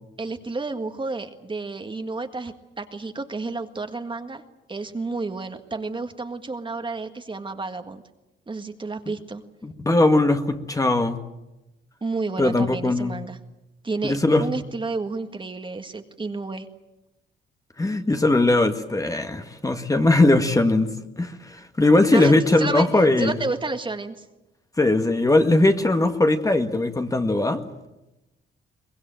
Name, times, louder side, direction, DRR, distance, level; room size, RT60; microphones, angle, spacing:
voice 1, 0.2-4.4 4.7-8.0 8.5-9.4 12.0-13.4 13.8-16.7 22.1-22.9 23.2-24.3, right 3 dB, 25° right, 7 dB, 1.8 m, -31 dB
voice 2, 9.6-11.2 12.4-13.1 14.0-14.5 17.8-23.3 24.8-27.6, left 2 dB, 15° left, 7 dB, 1.8 m, -20 dB
23.5 x 20.5 x 9.1 m, 0.97 s
cardioid pair, 90°, 20 cm